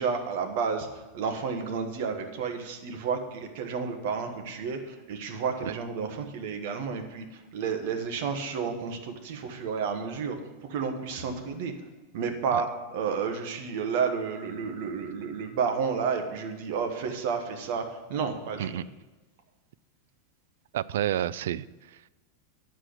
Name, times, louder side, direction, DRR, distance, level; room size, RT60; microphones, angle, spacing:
voice 1, 0.0-11.7 12.1-17.8 18.1-18.8, right 6 dB, 50° right, 5 dB, 1.3 m, -31 dB
voice 2, 20.7-22.1, right 11 dB, 80° right, 19 dB, 0.3 m, -30 dB
10.0 x 4.6 x 7.8 m, 1.1 s
supercardioid pair, 170°, 0 cm